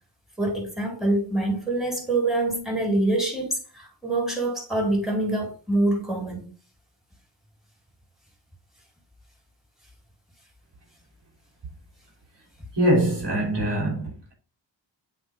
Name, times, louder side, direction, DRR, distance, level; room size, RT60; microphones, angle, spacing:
voice 1, 0.4-6.4, right 2 dB, ahead, 4.0 m, -25 dB
voice 2, 12.8-14.3, right 1 dB, 65° right, 3.2 m, -23 dB
7.9 x 4.5 x 3.7 m
cardioid pair, 40°, 44 cm